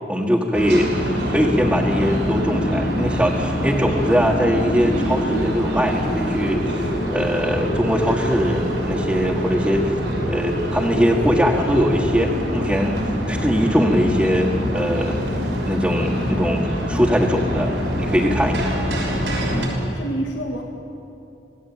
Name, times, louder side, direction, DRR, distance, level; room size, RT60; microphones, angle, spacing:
voice 1, 0.1-10.0 10.3-13.0 13.3-15.2 15.7-17.7 18.0-18.8, equal, 5° right, -4 dB, 1.8 m, -21 dB
sound 1, 0.5-19.7, equal, 85° right, 6.2 m, -25 dB
sound 2, 2.2-17.1, equal, 55° left, 3.5 m, -32 dB
voice 2, 19.5-20.6, right 1 dB, 80° left, 1 dB, 2.0 m, -29 dB
26.5 x 17.5 x 9.2 m, 2.7 s
head